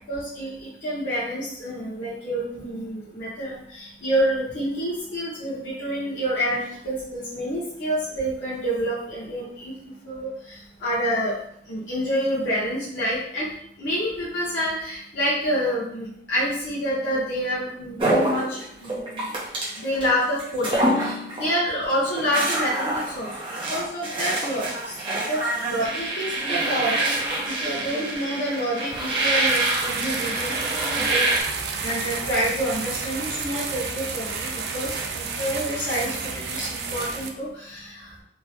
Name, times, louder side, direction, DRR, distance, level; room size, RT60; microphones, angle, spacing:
voice 1, 0.1-9.7 10.0-11.4 11.7-13.5 13.8-19.3 19.8-23.3 23.7-24.9 25.3-30.6 30.9-31.4 31.8-38.2, equal, 90° left, -10 dB, 1.0 m, -28 dB
sound 1, 18.0-20.1 20.4-21.6 21.9-31.4, right 2 dB, 30° right, 0.7 m, -26 dB
sound 2, 28.9-37.3, right 5 dB, 65° right, 0.4 m, -31 dB
3.5 x 2.0 x 3.0 m, 0.67 s
head